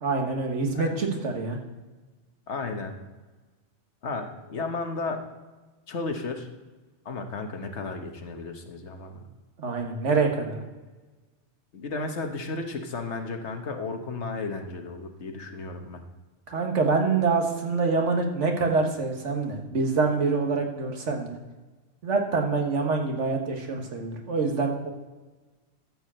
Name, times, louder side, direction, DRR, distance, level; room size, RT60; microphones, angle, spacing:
voice 1, 0.0-1.6 9.6-10.6 16.5-21.4 22.0-24.9, right 4 dB, 80° right, 3 dB, 1.7 m, -26 dB
voice 2, 2.5-2.9 4.0-5.2 5.9-6.5 7.0-9.3 11.7-16.0, left 3 dB, 70° left, 5 dB, 1.5 m, -33 dB
12.5 x 4.8 x 7.5 m, 1.3 s
omnidirectional pair, 1.2 m